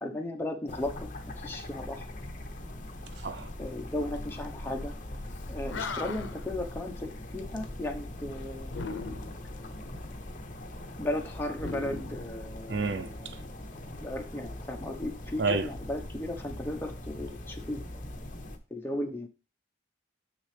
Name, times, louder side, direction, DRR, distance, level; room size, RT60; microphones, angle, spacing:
voice 1, 0.0-2.1 3.6-5.0 5.5-8.7 11.0-13.3 13.9-18.0 18.7-19.3, left 1 dB, 10° left, 1.0 m, -36 dB
sound 1, 0.7-18.6, left 1 dB, 40° left, 0.9 m, -41 dB
voice 2, 3.1-3.5 12.7-13.4 15.4-15.7, right 4 dB, 60° right, 0.4 m, -30 dB
Animal, 5.4-5.5 5.7-6.5 8.7-9.5 11.5-12.9, left 4 dB, 80° left, 0.6 m, -38 dB
6.6 x 6.2 x 3.3 m
head